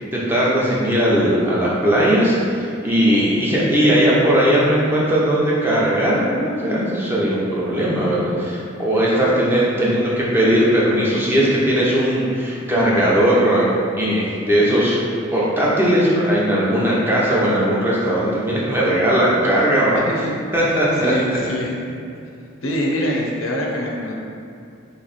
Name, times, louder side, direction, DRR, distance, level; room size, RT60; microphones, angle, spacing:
voice 1, 0.1-13.7 14.0-20.0 20.5-21.1, equal, 10° right, -7 dB, 0.6 m, -18 dB
voice 2, 21.0-21.7 22.6-24.1, equal, 80° left, -1 dB, 0.7 m, -24 dB
3.4 x 3.2 x 4.0 m, 2.5 s
head